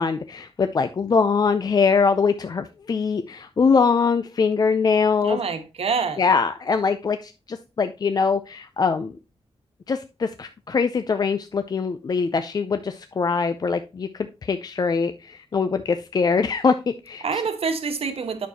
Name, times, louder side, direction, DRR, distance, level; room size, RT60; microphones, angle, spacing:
voice 1, 0.0-5.4 6.2-9.2 9.9-17.2, left 5 dB, 40° left, 0.4 m, -22 dB
voice 2, 5.2-6.2 17.2-18.5, right 5 dB, 65° right, 1.3 m, -26 dB
9.2 x 6.4 x 2.8 m
wide cardioid pair, 175°, 11 cm